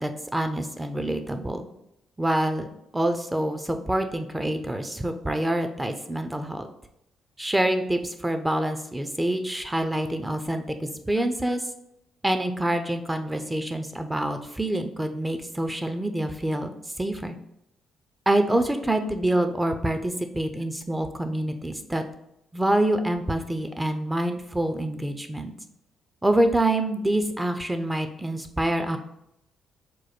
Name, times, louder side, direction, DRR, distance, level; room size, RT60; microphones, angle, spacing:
voice 1, 0.0-1.7 2.2-2.7 2.9-6.6 7.4-10.8 11.1-11.6 12.2-16.7 17.0-17.3 18.3-22.0 22.5-25.5 26.2-29.0, right 1 dB, 15° right, 7 dB, 0.6 m, -26 dB
4.6 x 2.2 x 4.3 m, 0.80 s
hypercardioid pair, 50°, 0 cm